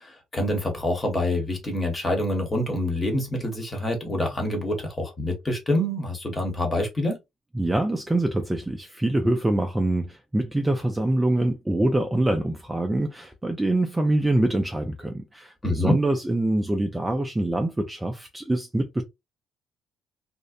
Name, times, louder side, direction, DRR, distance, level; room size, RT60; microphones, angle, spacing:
voice 1, 0.0-7.2 15.6-16.0, left 1 dB, 20° left, 1.0 m, -26 dB
voice 2, 7.5-19.0, right 1 dB, 10° right, 0.3 m, -25 dB
2.6 x 2.0 x 2.3 m
cardioid pair, 110°, 0 cm